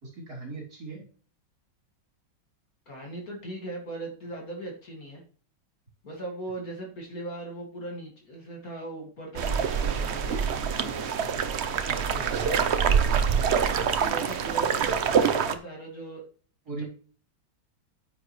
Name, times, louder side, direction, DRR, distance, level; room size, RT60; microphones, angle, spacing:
voice 1, 0.0-1.0 11.9-12.5 13.7-14.0 16.7-16.8, right 3 dB, 50° right, -2 dB, 3.9 m, -39 dB
voice 2, 2.9-5.2 6.0-11.5 12.1-13.2 13.6-16.3 16.8-16.9, right 2 dB, 45° left, 0 dB, 2.6 m, -39 dB
sound 1, 9.4-15.5, right 7 dB, 80° right, 0.6 m, -25 dB
9.4 x 8.9 x 3.2 m, 0.41 s
omnidirectional pair, 2.2 m